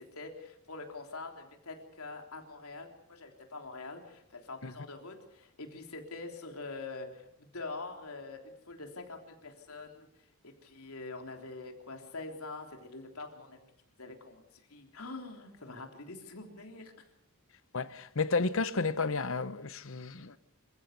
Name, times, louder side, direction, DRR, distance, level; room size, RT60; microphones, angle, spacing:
voice 1, 0.0-10.1 10.4-13.6 14.0-16.9, left 3 dB, 75° left, 3.5 m, -45 dB
voice 2, 17.7-20.4, left 4 dB, 60° left, 0.9 m, -32 dB
27.0 x 15.5 x 6.9 m
head